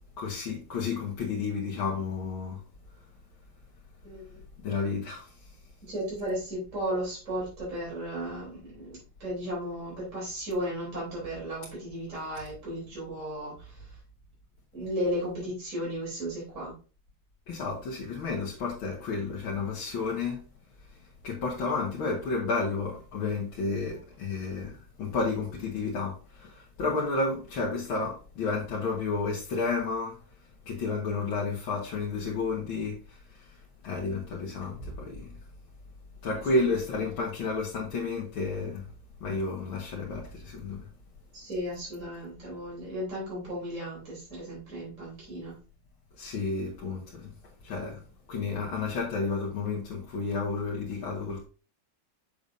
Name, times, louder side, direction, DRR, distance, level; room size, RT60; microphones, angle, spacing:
voice 1, 0.2-2.6 4.6-5.3 17.5-20.4 21.2-30.2 30.7-33.5 33.8-35.3 36.2-38.9 39.2-40.9 46.2-47.3 47.6-48.0 48.3-51.4, left 4 dB, 85° left, 2.2 m, -31 dB
voice 2, 4.0-4.4 5.8-13.8 14.7-16.7 36.3-37.2 41.3-45.6, equal, 40° right, 4.2 m, -35 dB
6.9 x 6.9 x 2.6 m
omnidirectional pair, 2.1 m